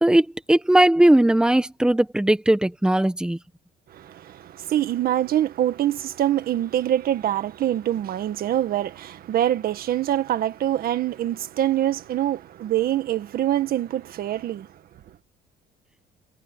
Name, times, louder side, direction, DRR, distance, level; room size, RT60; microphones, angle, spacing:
voice 1, 0.0-3.4, right 1 dB, 5° right, 1.5 m, -18 dB
voice 2, 3.9-14.7, right 12 dB, 60° right, 1.8 m, -24 dB
cardioid pair, 110°, 17 cm